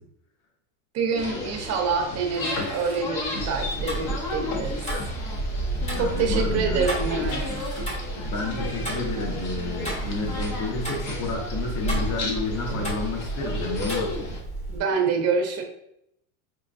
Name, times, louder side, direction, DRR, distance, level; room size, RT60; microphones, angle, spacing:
voice 1, 0.9-4.8 6.0-7.5 14.7-15.6, right 5 dB, 35° right, 4 dB, 0.7 m, -26 dB
sound 1, 1.2-14.4, left 1 dB, 40° left, 0.8 m, -32 dB
sound 2, 2.3-4.0 4.8-5.0 5.7-6.3 7.1-11.2, right 1 dB, 10° right, 1.0 m, -48 dB
Tick-tock, 3.4-14.8, right 1 dB, 15° left, 1.1 m, -33 dB
voice 2, 5.9-6.8 8.2-14.1, left 3 dB, 65° left, 1 dB, 1.2 m, -30 dB
4.8 x 2.3 x 2.5 m, 0.75 s
supercardioid pair, 135°, 43 cm